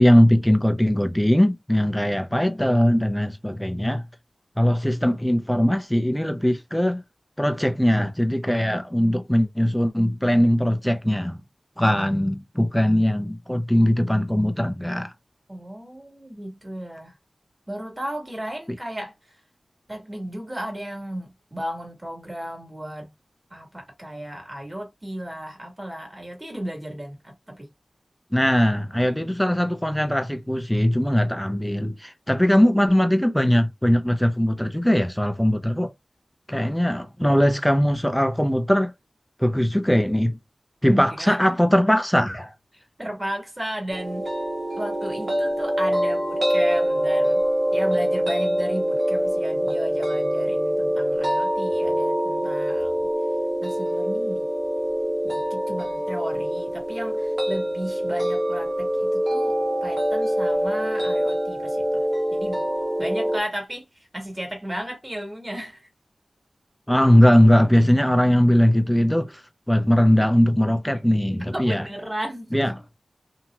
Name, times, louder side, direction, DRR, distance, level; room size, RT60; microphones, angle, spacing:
voice 1, 0.0-4.0 4.6-7.0 7.4-11.4 11.8-15.1 28.3-35.9 36.5-38.9 39.4-40.4 40.8-42.5 66.9-69.4 69.7-71.8 72.5-72.7, equal, 5° left, 0.6 m, -20 dB
voice 2, 15.5-17.1 17.7-19.1 19.9-23.1 23.5-27.7 40.8-41.6 43.0-44.3 44.7-47.4 47.7-53.1 53.6-54.5 55.2-62.6 63.0-65.9 71.3-72.8, right 1 dB, 25° right, 1.7 m, -34 dB
sound 1, 43.9-63.4, equal, 50° right, 1.3 m, -24 dB
2.9 x 2.8 x 2.4 m
wide cardioid pair, 55°, 0 cm